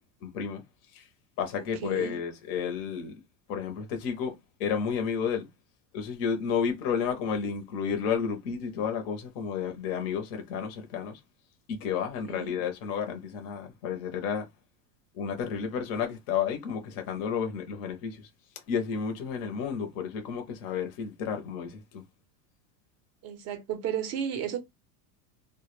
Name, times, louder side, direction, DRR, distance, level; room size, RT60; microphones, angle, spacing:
voice 1, 0.2-0.6 0.9-1.1 1.4-3.1 3.5-4.3 4.6-5.5 5.9-11.2 11.7-14.4 15.1-18.3 18.7-22.0, left 7 dB, 30° left, 0.5 m, -31 dB
voice 2, 1.6-2.1 12.2-12.5 23.2-24.6, right 9 dB, 30° right, 0.6 m, -33 dB
2.1 x 2.1 x 3.0 m
supercardioid pair, 145°, 50 cm